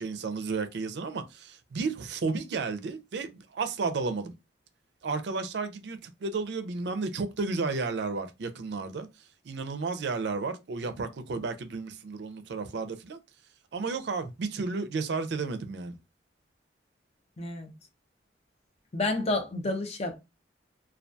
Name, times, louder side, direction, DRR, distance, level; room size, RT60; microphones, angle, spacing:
voice 1, 0.0-4.3 5.0-9.1 9.5-13.2 13.7-15.9, right 4 dB, 65° right, 0.4 m, -32 dB
voice 2, 17.4-17.7 18.9-20.2, left 2 dB, 35° left, 0.5 m, -30 dB
2.2 x 2.2 x 2.5 m
head